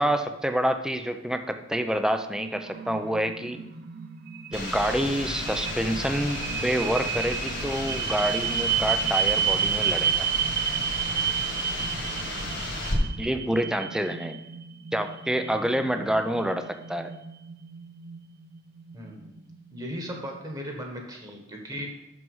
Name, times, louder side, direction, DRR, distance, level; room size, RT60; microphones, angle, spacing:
voice 1, 0.0-3.6 4.5-10.3 13.2-14.4 14.9-17.1, equal, 5° right, 7 dB, 0.5 m, -27 dB
sound 1, 1.9-19.9, right 8 dB, 55° right, 0.5 m, -31 dB
sound 2, 4.5-12.9, left 2 dB, 60° left, 1.9 m, -34 dB
voice 2, 12.2-12.6 18.9-19.4 19.7-21.9, equal, 20° right, 1 dB, 1.4 m, -37 dB
6.1 x 6.0 x 5.5 m, 0.93 s
head